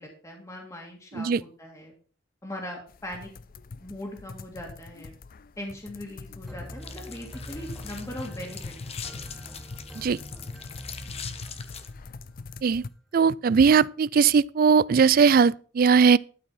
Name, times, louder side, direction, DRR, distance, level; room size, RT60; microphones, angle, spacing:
voice 1, 0.0-1.9 2.4-3.3 3.8-5.1 5.6-8.8, left 1 dB, 15° left, 2.2 m, -40 dB
sound 1, 2.9-12.9, left 3 dB, 50° left, 0.5 m, -43 dB
sound 2, 6.5-12.1, equal, ahead, 1.4 m, -44 dB
sound 3, 6.8-11.9, left 7 dB, 35° left, 1.0 m, -43 dB
voice 2, 13.1-16.2, right 6 dB, 50° right, 0.4 m, -19 dB
12.5 x 5.4 x 5.7 m
head